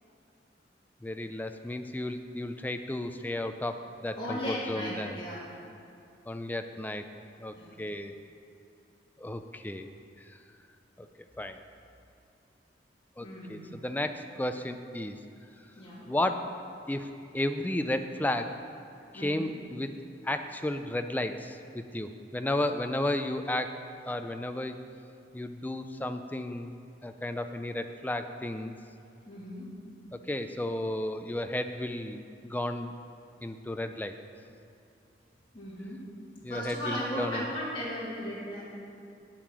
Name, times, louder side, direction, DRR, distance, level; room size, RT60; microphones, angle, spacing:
voice 1, 1.0-5.2 6.3-7.1 7.4-8.1 9.2-9.9 10.2-10.4 11.0-11.1 11.4-11.6 13.2-15.2 16.1-16.5 16.9-18.6 19.1-19.9 20.2-23.8 24.0-24.8 25.3-26.7 27.0-28.8 30.1-32.9 33.4-34.2 36.4-37.5, left 1 dB, 10° left, 7 dB, 0.4 m, -33 dB
voice 2, 4.2-5.5 7.5-7.7 13.2-13.6 15.7-16.0 19.1-19.5 29.2-29.7 35.5-36.0 36.5-38.7, equal, 30° left, -7 dB, 2.9 m, -36 dB
9.3 x 8.7 x 6.1 m, 2.6 s
head